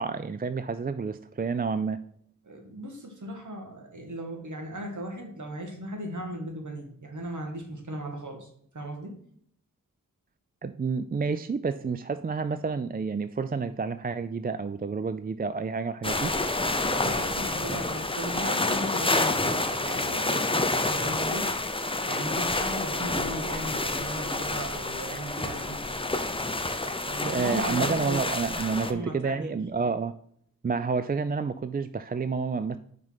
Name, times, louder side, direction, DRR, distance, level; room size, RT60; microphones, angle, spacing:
voice 1, 0.0-2.0 10.6-16.3 27.2-30.1 30.6-32.8, right 4 dB, 25° right, 11 dB, 0.4 m, -29 dB
voice 2, 2.4-9.1 16.8-21.5 22.1-25.8 27.0-28.2 28.9-29.5, right 1 dB, 55° right, 2 dB, 2.1 m, -37 dB
sound 1, 16.0-28.9, left 2 dB, 15° left, 0.7 m, -28 dB
5.4 x 4.8 x 5.7 m, 0.64 s
cardioid pair, 50°, 35 cm